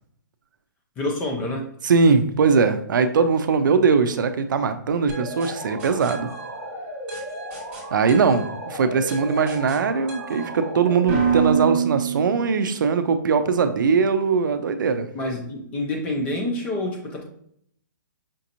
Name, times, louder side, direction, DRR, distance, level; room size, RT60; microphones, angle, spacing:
voice 1, 1.0-1.7 15.1-17.2, left 1 dB, 10° left, 0 dB, 0.5 m, -27 dB
voice 2, 1.8-6.3 7.9-15.1, right 5 dB, 75° right, 9 dB, 0.5 m, -20 dB
sound 1, 5.1-12.9, right 6 dB, 10° right, 1.3 m, -29 dB
5.1 x 2.8 x 2.5 m, 0.67 s
hypercardioid pair, 170°, 11 cm